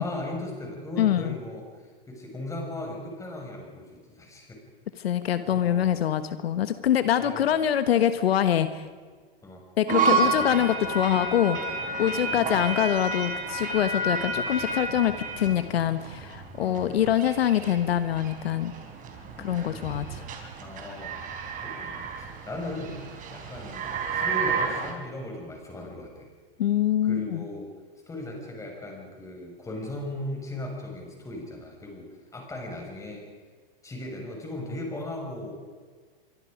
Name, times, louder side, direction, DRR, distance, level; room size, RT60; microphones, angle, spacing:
voice 1, 0.0-4.6 5.4-6.0 7.2-7.6 9.4-9.7 10.2-10.7 12.0-12.7 16.6-17.0 19.3-20.1 20.6-21.2 21.6-26.3 27.0-27.7 28.1-33.2 33.8-35.6, left 1 dB, 10° left, 1 dB, 6.2 m, -38 dB
voice 2, 1.0-1.3 5.0-8.8 9.8-11.6 12.0-18.7 19.4-20.2 26.6-27.4, left 10 dB, 85° left, 11 dB, 1.4 m, -24 dB
sound 1, 9.9-24.9, right 4 dB, 25° right, 4.2 m, -31 dB
26.0 x 23.5 x 5.2 m, 1.5 s
hypercardioid pair, 140°, 30 cm